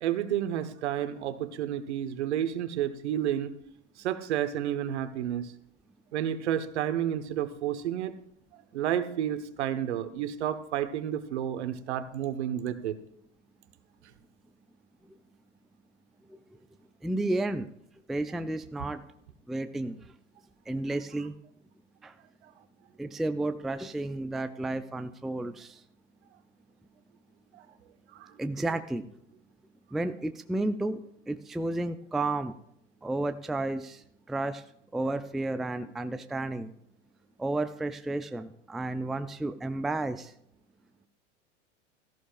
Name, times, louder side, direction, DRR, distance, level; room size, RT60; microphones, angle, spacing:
voice 1, 0.0-3.5 4.0-5.5 6.1-8.2 8.5-13.0 22.4-22.5 27.5-27.7 28.1-28.3, right 10 dB, 65° right, 10 dB, 1.3 m, -31 dB
voice 2, 17.0-17.7 18.1-19.0 19.5-20.0 20.7-21.3 22.0-22.1 23.0-25.8 28.4-29.0 29.9-31.0 31.3-32.5 33.0-34.6 34.9-36.7 37.4-40.3, right 2 dB, ahead, 9 dB, 0.4 m, -32 dB
17.0 x 14.0 x 2.5 m, 0.73 s
figure-of-eight pair, 90°, 36 cm